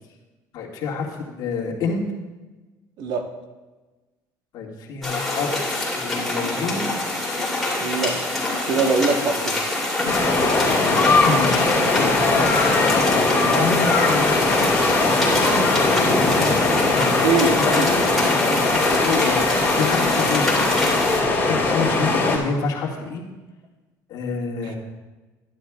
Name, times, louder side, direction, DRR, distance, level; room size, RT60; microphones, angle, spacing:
voice 1, 0.5-2.0 4.5-6.8 11.0-15.6 16.9-17.3 17.6-18.0 19.0-19.4 19.7-20.7 21.1-23.2 24.1-24.8, left 4 dB, 60° left, -2 dB, 1.9 m, -28 dB
sound 1, 5.0-21.2, left 2 dB, 5° left, 2.8 m, -25 dB
voice 2, 7.8-8.2 8.6-9.6 17.2-17.9, right 4 dB, 65° right, 5 dB, 1.1 m, -22 dB
sound 2, 10.1-22.4, left 3 dB, 25° left, 2.6 m, -20 dB
12.0 x 11.0 x 2.4 m, 1.2 s
cardioid pair, 115°, 8 cm